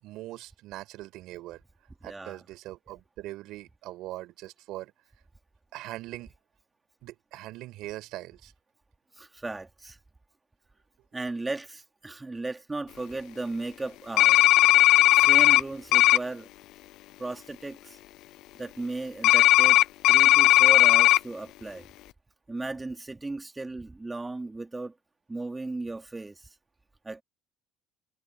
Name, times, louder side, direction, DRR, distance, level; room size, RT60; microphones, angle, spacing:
voice 1, 0.0-1.6 2.0-5.2 5.7-6.3 7.0-8.5, right 16 dB, 65° right, 5.1 m, -41 dB
voice 2, 2.0-2.4 9.2-10.0 11.1-14.5 15.1-16.5 17.2-18.0 18.6-19.8 20.1-21.9 22.5-24.9 25.3-26.5 27.0-27.2, right 2 dB, 15° right, 3.5 m, -36 dB
sound 1, 14.2-15.6 15.9-16.2 19.2-21.2, left 15 dB, 65° left, 0.7 m, -17 dB
hypercardioid pair, 70°, 0 cm